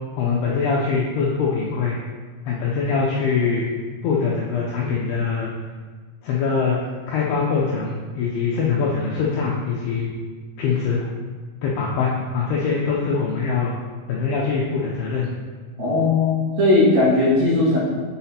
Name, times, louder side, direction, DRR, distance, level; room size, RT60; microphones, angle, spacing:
voice 1, 0.2-2.0 2.5-3.6 4.0-5.5 6.2-6.8 7.1-10.1 10.6-11.0 11.6-13.7 14.1-15.3, left 5 dB, 85° left, -4 dB, 2.3 m, -23 dB
voice 2, 15.8-17.8, left 2 dB, 60° right, -10 dB, 3.4 m, -18 dB
7.7 x 5.7 x 2.8 m, 1.5 s
omnidirectional pair, 5.3 m